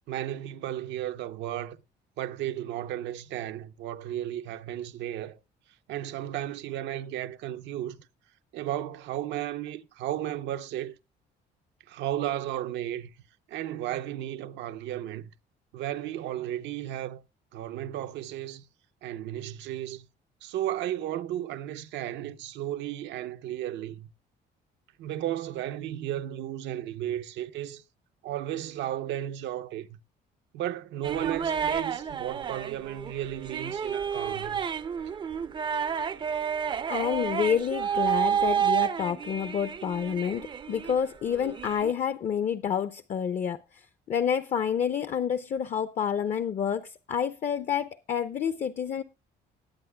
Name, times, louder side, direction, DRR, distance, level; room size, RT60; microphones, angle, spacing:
voice 1, 0.1-1.8 2.2-5.4 5.9-8.0 8.5-10.9 11.9-13.1 13.5-15.3 15.7-17.2 17.5-18.6 19.0-20.1 20.4-24.1 25.0-27.8 28.2-29.9 30.5-34.6, right 12 dB, 80° right, 0.7 m, -34 dB
sound 1, 31.0-41.0 41.3-41.9, right 8 dB, 25° right, 0.5 m, -30 dB
voice 2, 36.9-43.6 44.1-49.0, left 8 dB, 40° left, 0.6 m, -29 dB
19.5 x 8.6 x 2.2 m
cardioid pair, 135°, 18 cm